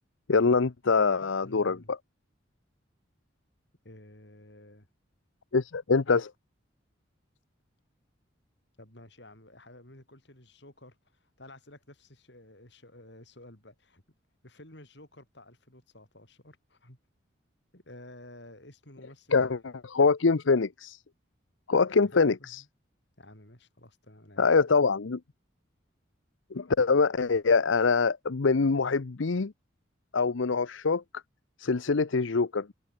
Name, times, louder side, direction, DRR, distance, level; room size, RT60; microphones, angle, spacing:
voice 1, 0.3-1.8 5.5-6.3 19.3-19.6 19.9-21.0 21.7-22.6 24.4-25.2 26.5-29.5 30.1-31.0 31.6-32.7, left 4 dB, 80° left, 0.7 m, -24 dB
voice 2, 1.2-1.9 3.8-4.9 8.8-14.0 14.4-17.0 17.7-19.6 22.1-22.7 23.2-24.5, left 1 dB, 60° left, 6.1 m, -52 dB
head